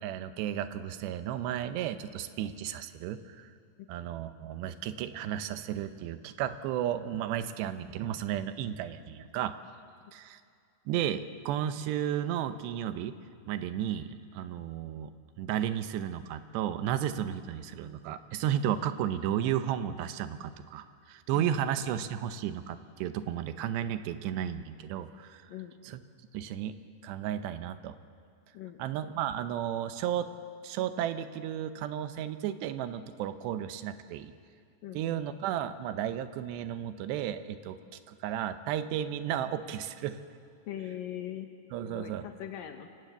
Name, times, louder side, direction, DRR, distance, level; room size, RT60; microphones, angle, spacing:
voice 1, 0.0-3.5 3.9-9.5 10.1-10.4 10.9-13.1 13.5-15.1 15.4-25.4 25.8-26.0 26.3-26.8 27.0-28.0 28.8-30.3 30.6-34.3 34.9-37.8 38.1-40.2 41.7-42.3, right 10 dB, 80° right, 10 dB, 3.0 m, -33 dB
voice 2, 21.3-22.0 25.5-25.7 28.5-28.8 34.8-35.2 40.7-41.5 41.8-42.9, left 11 dB, 70° left, 5 dB, 2.3 m, -41 dB
28.5 x 17.5 x 7.9 m, 2.3 s
omnidirectional pair, 4.9 m